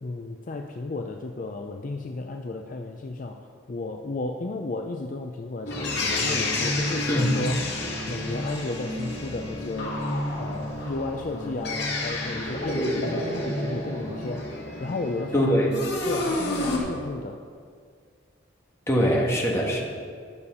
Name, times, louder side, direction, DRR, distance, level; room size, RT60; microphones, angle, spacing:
voice 1, 0.0-10.0 10.4-15.8 16.0-17.5, left 2 dB, 45° left, 4 dB, 0.5 m, -33 dB
sound 1, 5.7-16.8, left 1 dB, 60° left, 2.2 m, -30 dB
voice 2, 15.3-15.7 18.9-19.8, equal, 15° left, -2 dB, 1.4 m, -22 dB
12.0 x 6.9 x 5.5 m, 2.1 s
head